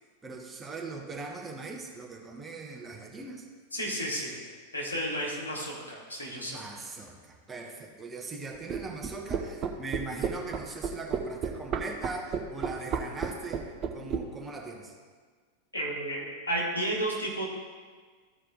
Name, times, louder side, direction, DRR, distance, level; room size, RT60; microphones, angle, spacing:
voice 1, 0.2-3.5 6.5-15.0, right 3 dB, 15° right, 1 dB, 1.1 m, -40 dB
voice 2, 3.7-4.4 4.7-6.6 15.7-17.5, right 1 dB, 75° left, -3 dB, 2.2 m, -32 dB
sound 1, 8.7-14.2, right 7 dB, 35° right, 0.7 m, -31 dB
13.5 x 4.8 x 3.8 m, 1.5 s
figure-of-eight pair, 90°, 0 cm